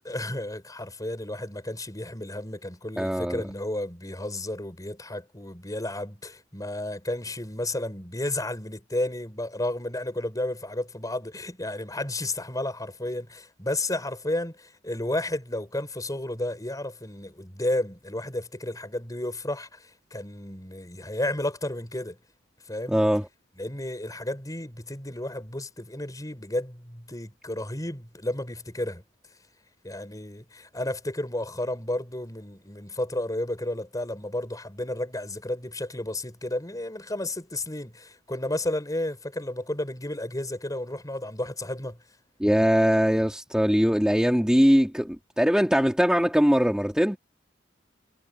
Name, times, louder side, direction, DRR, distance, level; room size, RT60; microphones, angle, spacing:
voice 1, 0.1-22.2 22.7-23.0 23.6-29.0 29.8-42.0, left 1 dB, 20° left, 5.4 m, -32 dB
voice 2, 3.0-3.4 22.9-23.3 42.4-47.2, equal, 5° right, 2.7 m, -21 dB
head